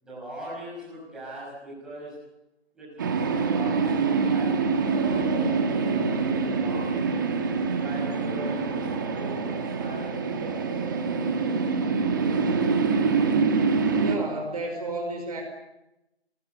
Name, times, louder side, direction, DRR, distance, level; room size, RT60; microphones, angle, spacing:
voice 1, 0.0-2.1 2.7-7.1 7.7-10.6, right 1 dB, ahead, -7 dB, 6.0 m, -41 dB
sound 1, 3.0-14.2, right 4 dB, 20° right, 1.6 m, -25 dB
voice 2, 13.9-15.4, right 2 dB, 35° right, 3 dB, 5.1 m, -32 dB
29.5 x 20.0 x 8.3 m, 0.92 s
figure-of-eight pair, 170°, 33 cm